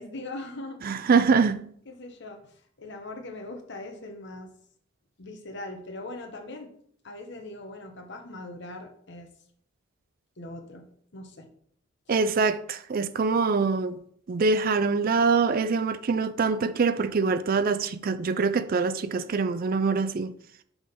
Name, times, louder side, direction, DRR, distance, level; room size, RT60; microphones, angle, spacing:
voice 1, 0.0-1.2 1.9-4.5 5.2-6.7 7.0-9.3 10.4-10.9 11.1-11.5 12.1-12.2, left 2 dB, 65° left, 1.0 m, -41 dB
voice 2, 0.8-1.6 12.1-14.0 14.3-20.3, right 4 dB, 50° right, 0.4 m, -24 dB
6.2 x 3.7 x 5.0 m
head